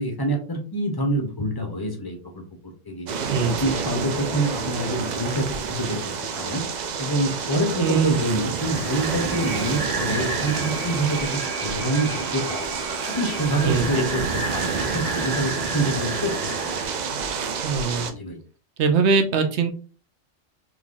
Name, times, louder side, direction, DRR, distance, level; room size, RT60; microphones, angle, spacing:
voice 1, 0.0-3.1 3.6-6.0 6.3-6.6 7.0-12.7 13.2-17.0 18.1-18.4, right 1 dB, 25° left, 3 dB, 0.5 m, -26 dB
sound 1, 3.1-18.1, right 6 dB, 80° right, 0.4 m, -29 dB
voice 2, 7.8-8.2 13.6-14.1 17.6-18.1 18.8-19.7, right 5 dB, 65° right, 6 dB, 0.9 m, -22 dB
sound 2, 8.6-16.9, right 1 dB, 20° right, 0.7 m, -33 dB
3.6 x 3.0 x 2.5 m, 0.38 s
omnidirectional pair, 1.3 m